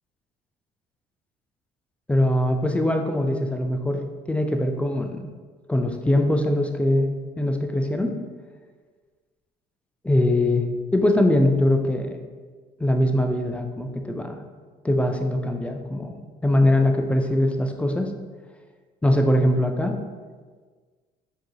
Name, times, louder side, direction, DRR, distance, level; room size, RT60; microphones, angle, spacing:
voice 1, 2.1-5.3 5.7-8.1 10.0-12.2 12.8-14.4 14.8-16.2 16.4-18.1 19.0-20.0, left 1 dB, 5° left, 4 dB, 0.3 m, -22 dB
4.4 x 2.7 x 3.0 m, 1.5 s
cardioid pair, 110°, 17 cm